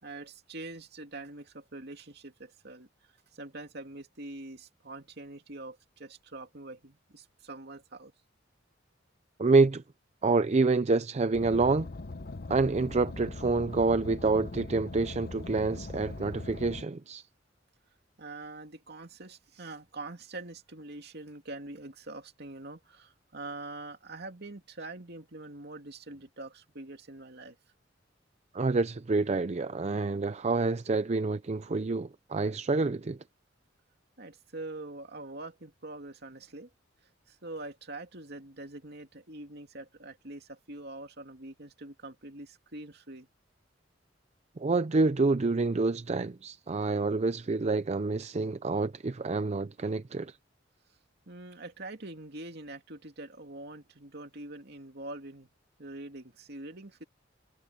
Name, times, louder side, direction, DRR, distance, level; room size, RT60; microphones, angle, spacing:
voice 1, 0.0-2.9 3.3-8.1 18.2-27.6 34.2-36.7 37.3-43.3 51.3-55.5 55.8-57.0, right 2 dB, 60° right, 2.6 m, -44 dB
voice 2, 9.4-9.8 10.2-11.9 12.5-17.2 28.5-33.2 44.6-50.3, right 3 dB, 35° right, 0.5 m, -27 dB
Car, 11.3-16.8, left 2 dB, 55° left, 0.9 m, -41 dB
head